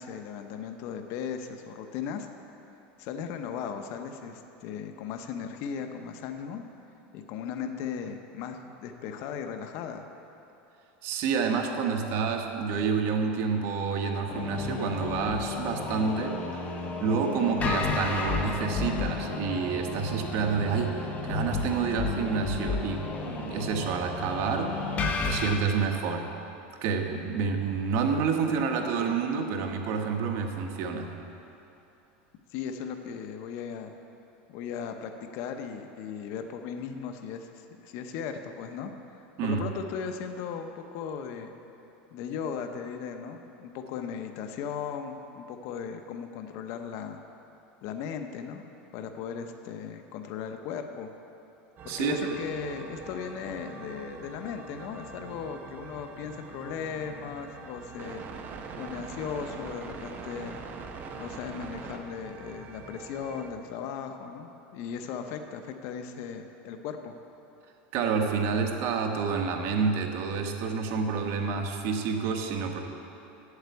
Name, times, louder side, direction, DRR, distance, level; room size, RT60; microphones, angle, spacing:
voice 1, 0.0-2.3 3.0-6.6 7.1-10.0 32.5-33.9 34.5-41.5 42.1-47.2 47.8-48.6 48.9-51.1 51.8-58.3 58.8-60.6 61.2-67.2, left 7 dB, 55° left, 6 dB, 0.8 m, -37 dB
voice 2, 11.0-16.4 17.0-24.9 25.2-26.3 26.8-31.1 39.4-39.7 51.9-52.4 67.9-72.8, right 5 dB, 50° right, 4 dB, 1.2 m, -28 dB
sound 1, 14.3-25.6, left 4 dB, 25° left, 0.9 m, -32 dB
sound 2, 51.8-63.5, right 4 dB, 30° right, 0.8 m, -43 dB
8.1 x 7.9 x 8.3 m, 2.9 s
supercardioid pair, 140°, 6 cm